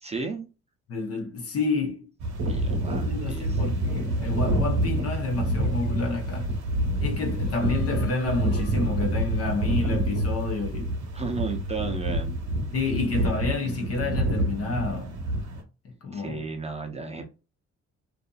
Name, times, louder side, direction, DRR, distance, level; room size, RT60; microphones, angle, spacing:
voice 1, 0.0-0.5 2.5-3.6 11.1-12.4 16.1-17.2, right 4 dB, 20° right, 0.6 m, -34 dB
voice 2, 0.9-2.1 2.8-6.5 7.0-10.9 12.7-15.1 16.0-16.4, left 3 dB, 50° left, 0.8 m, -29 dB
sound 1, 2.2-15.6, right 1 dB, 70° right, 0.9 m, -27 dB
Singing, 5.6-10.9, left 5 dB, 90° left, 1.5 m, -51 dB
2.6 x 2.5 x 2.3 m
cardioid pair, 90°, 30 cm